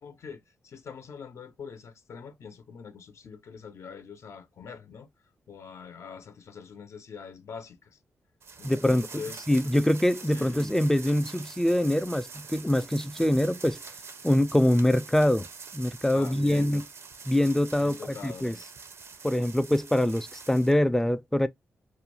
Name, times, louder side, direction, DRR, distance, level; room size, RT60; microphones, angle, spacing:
voice 1, 0.0-5.1 5.5-8.0 8.6-9.5 10.2-10.5 16.1-16.8 17.8-18.5, left 6 dB, 65° left, 0.5 m, -43 dB
sound 1, 8.4-20.8, right 5 dB, 60° right, 0.5 m, -45 dB
voice 2, 8.6-9.2 9.5-13.8 14.2-15.5 15.7-16.8 17.3-18.5 19.2-21.5, left 1 dB, 5° left, 0.3 m, -24 dB
2.4 x 2.1 x 2.9 m
cardioid pair, 70°, 5 cm